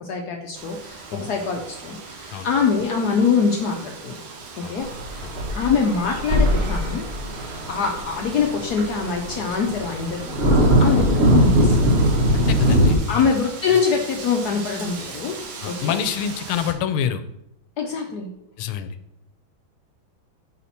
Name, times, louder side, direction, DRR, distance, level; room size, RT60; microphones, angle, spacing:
voice 1, 0.0-4.2 4.6-7.0 7.7-11.9 12.5-12.8 13.1-15.3 15.6-16.0 17.8-18.3, left 5 dB, 70° left, 1 dB, 1.0 m, -24 dB
Wind, 0.5-16.7, right 4 dB, 80° right, 1.9 m, -39 dB
sound 1, 4.8-13.0, equal, 60° right, 0.6 m, -20 dB
voice 2, 12.3-13.3 15.6-17.2 18.6-19.0, left 8 dB, 85° left, 10 dB, 1.4 m, -27 dB
5.7 x 5.0 x 4.2 m, 0.82 s
omnidirectional pair, 2.3 m